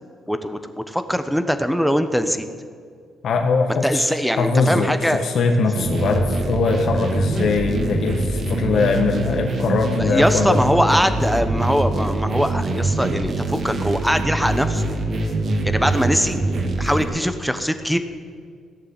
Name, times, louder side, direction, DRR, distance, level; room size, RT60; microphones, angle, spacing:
voice 1, 0.3-2.5 3.8-5.2 10.0-14.9 15.6-16.4 16.8-18.0, equal, ahead, 9 dB, 1.0 m, -21 dB
voice 2, 3.2-4.1 4.4-10.6, left 4 dB, 65° left, 3 dB, 1.3 m, -21 dB
sound 1, 5.8-17.0, right 2 dB, 55° right, 2.0 m, -24 dB
16.0 x 6.8 x 9.5 m, 2.1 s
cardioid pair, 90°, 0 cm